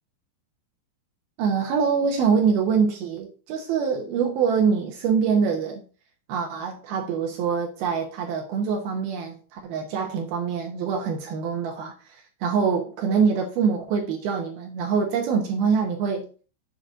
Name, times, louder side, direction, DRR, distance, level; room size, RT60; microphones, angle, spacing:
voice 1, 1.4-5.8 6.3-16.3, right 6 dB, 70° right, 2.5 m, -24 dB
8.6 x 7.6 x 2.7 m
omnidirectional pair, 5.3 m